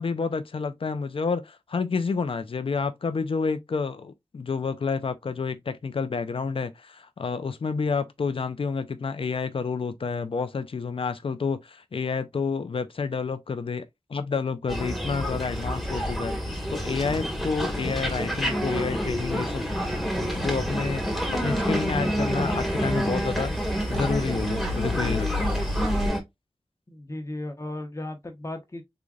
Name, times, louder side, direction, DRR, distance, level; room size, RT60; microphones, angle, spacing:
voice 1, 0.0-19.7 20.2-25.5, left 5 dB, 65° left, 0.6 m, -29 dB
sound 1, 14.7-26.2, equal, ahead, 1.5 m, -28 dB
sound 2, 19.1-26.1, left 1 dB, 65° right, 1.6 m, -34 dB
voice 2, 26.9-28.8, left 1 dB, 30° left, 1.1 m, -35 dB
3.8 x 3.2 x 2.4 m
wide cardioid pair, 75°, 10 cm